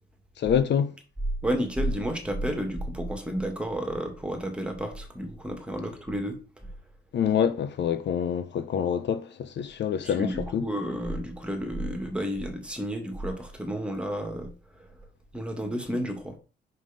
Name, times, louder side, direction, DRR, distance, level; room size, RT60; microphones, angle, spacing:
voice 1, 0.4-1.0 7.1-10.7, left 8 dB, 65° left, 0.9 m, -26 dB
voice 2, 1.4-6.7 10.0-15.0 15.3-16.4, equal, 5° right, 2.4 m, -31 dB
5.7 x 5.2 x 5.3 m
cardioid pair, 90°, 20 cm